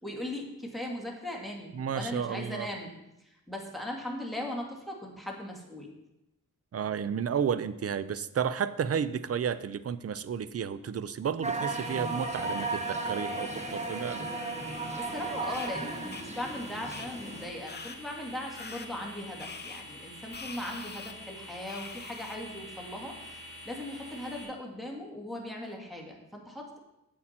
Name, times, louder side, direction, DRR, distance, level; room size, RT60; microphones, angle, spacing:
voice 1, 0.0-2.9 3.5-5.9 15.0-26.8, left 1 dB, ahead, 0 dB, 2.1 m, -39 dB
voice 2, 1.7-2.7 6.7-14.3, right 7 dB, 45° right, 15 dB, 0.5 m, -32 dB
sound 1, 11.4-17.5, right 3 dB, 20° right, 1.0 m, -35 dB
sound 2, 11.6-24.4, left 1 dB, 65° right, 3.8 m, -47 dB
sound 3, 15.5-15.7 16.1-16.2 16.9-17.1 17.7-18.0 18.6-18.9 19.4-19.8 20.3-21.1 21.7-22.4, left 5 dB, 30° left, 0.6 m, -43 dB
8.4 x 7.6 x 4.4 m, 0.91 s
cardioid pair, 75°, 35 cm